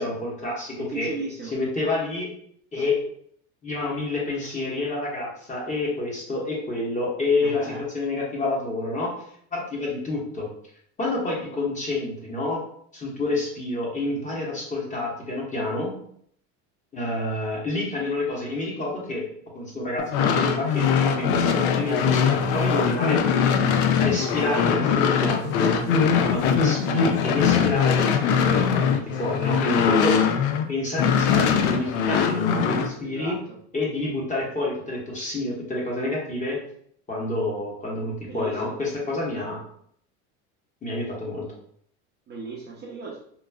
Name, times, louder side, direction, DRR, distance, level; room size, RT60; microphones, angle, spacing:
voice 1, 0.0-1.1 1.5-2.3 2.7-3.0 3.6-9.1 9.5-10.5 11.0-12.6 12.9-15.9 16.9-19.2 19.5-23.2 23.5-23.7 24.0-30.2 30.7-33.4 33.7-36.6 37.1-39.6 40.8-41.5, left 2 dB, 20° left, -4 dB, 1.1 m, -28 dB
voice 2, 0.7-1.5 2.8-2.9 7.4-7.9 33.0-33.6 38.3-38.8 42.3-43.2, right 3 dB, 30° right, -3 dB, 0.6 m, -36 dB
sound 1, 20.0-30.7 31.0-32.9, left 7 dB, 75° left, 0.5 m, -22 dB
3.0 x 2.4 x 2.3 m, 0.64 s
supercardioid pair, 115°, 35 cm